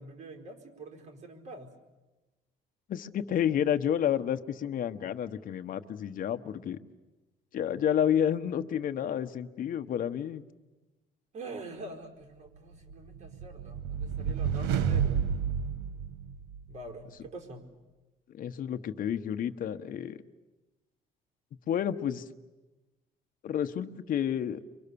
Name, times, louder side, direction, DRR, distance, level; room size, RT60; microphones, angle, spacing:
voice 1, 0.0-1.7 11.3-15.3 16.7-17.7, right 2 dB, 45° right, 2 dB, 4.6 m, -45 dB
voice 2, 2.9-6.8 7.5-10.4 18.3-20.2 21.7-22.2 23.4-24.6, left 9 dB, 55° left, 9 dB, 1.2 m, -30 dB
sound 1, 12.9-16.7, right 7 dB, 90° right, 1.2 m, -30 dB
30.0 x 24.0 x 7.0 m, 1.1 s
cardioid pair, 110°, 17 cm